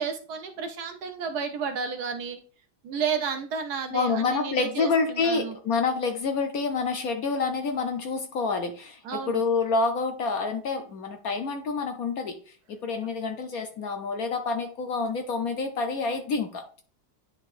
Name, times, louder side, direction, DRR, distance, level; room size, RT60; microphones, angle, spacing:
voice 1, 0.0-2.4 2.8-5.5 9.0-9.4, right 6 dB, 65° right, 6 dB, 1.2 m, -32 dB
voice 2, 3.9-12.4 12.7-16.8, left 4 dB, 60° left, 6 dB, 1.1 m, -28 dB
9.7 x 5.2 x 2.5 m, 0.40 s
omnidirectional pair, 2.0 m